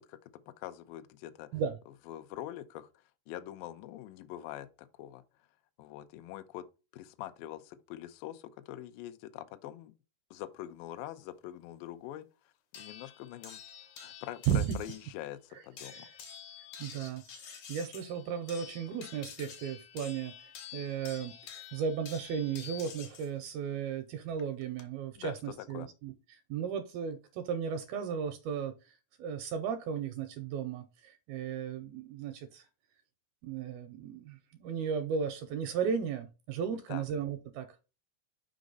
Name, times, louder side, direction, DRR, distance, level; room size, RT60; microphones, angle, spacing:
voice 1, 0.0-1.6 2.1-5.2 5.8-6.6 6.9-9.9 10.3-12.3 12.8-13.6 14.0-16.1 25.2-25.9 36.9-37.0, left 13 dB, 85° left, 2.0 m, -44 dB
sound 1, 12.7-15.1 15.8-23.3 24.4-24.8, left 7 dB, 65° left, 2.1 m, -49 dB
voice 2, 16.8-20.4 20.7-32.7 33.4-37.8, right 7 dB, 80° right, 2.3 m, -35 dB
6.1 x 5.2 x 3.9 m
omnidirectional pair, 4.8 m